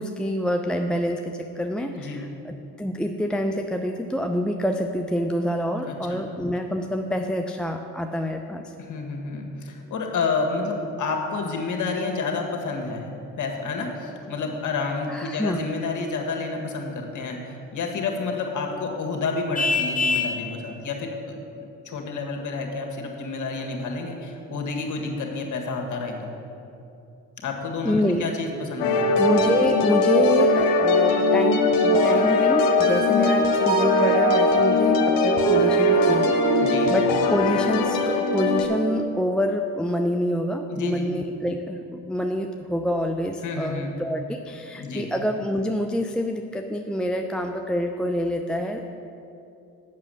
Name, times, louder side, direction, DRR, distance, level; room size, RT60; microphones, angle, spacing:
voice 1, 0.0-8.7 15.1-15.6 27.8-28.3 29.2-48.9, equal, ahead, 4 dB, 0.5 m, -27 dB
voice 2, 5.8-6.2 8.8-13.1 13.4-21.4 21.8-26.3 27.4-29.2 36.6-36.9 40.7-41.1 43.4-43.9 44.8-45.1, left 4 dB, 55° left, 1 dB, 1.7 m, -29 dB
Vehicle horn car horn honking, 19.5-20.4, left 4 dB, 20° left, 1.1 m, -23 dB
sound 1, 28.8-38.7, left 3 dB, 80° left, 1.0 m, -20 dB
Mallet percussion, 31.1-32.5 32.8-38.2, right 10 dB, 85° right, 0.5 m, -27 dB
7.5 x 6.3 x 7.7 m, 2.8 s
supercardioid pair, 60°, 36 cm